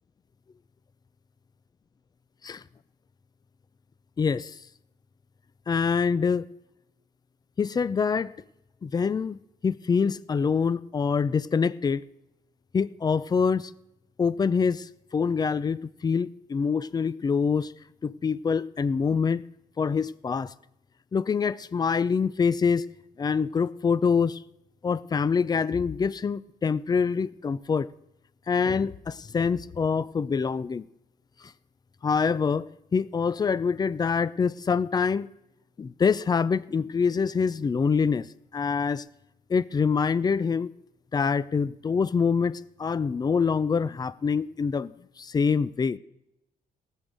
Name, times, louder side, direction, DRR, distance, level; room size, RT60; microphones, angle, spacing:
voice 1, 4.2-4.6 5.7-6.5 7.6-8.3 8.8-12.0 12.7-13.7 14.2-17.7 18.0-19.4 19.8-20.5 21.1-22.8 23.2-24.4 24.8-27.9 28.5-30.8 32.0-32.7 32.9-35.3 35.8-38.3 38.5-39.0 39.5-40.7 41.1-44.9 45.2-46.0, left 5 dB, 25° left, 0.4 m, -25 dB
18.5 x 6.4 x 6.7 m
cardioid pair, 145°, 16 cm